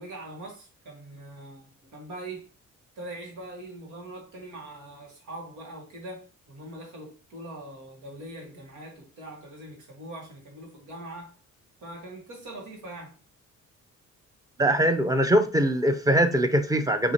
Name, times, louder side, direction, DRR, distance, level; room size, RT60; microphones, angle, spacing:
voice 1, 0.0-2.5 2.9-11.3 11.8-13.2, right 1 dB, 90° right, 1.7 m, -42 dB
voice 2, 14.6-17.1, right 1 dB, 10° right, 0.6 m, -22 dB
6.0 x 2.9 x 2.9 m
cardioid pair, 90°, 30 cm